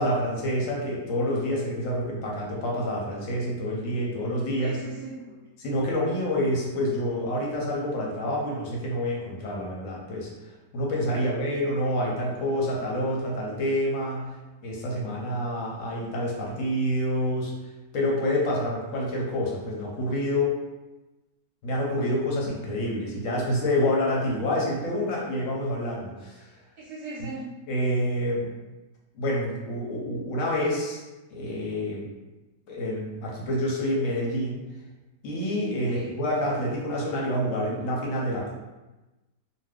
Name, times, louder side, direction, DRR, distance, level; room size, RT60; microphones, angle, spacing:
voice 1, 0.0-4.8 5.6-10.3 10.7-14.3 14.6-17.5 17.9-20.5 21.6-26.5 27.7-28.5 29.1-31.0 31.3-32.0 32.7-34.6 35.2-38.5, left 1 dB, 60° left, -3 dB, 0.9 m, -27 dB
voice 2, 4.6-5.3 11.0-11.4 26.8-27.4 35.9-36.2, right 2 dB, 50° right, -6 dB, 0.8 m, -39 dB
2.6 x 2.2 x 3.4 m, 1.1 s
omnidirectional pair, 1.8 m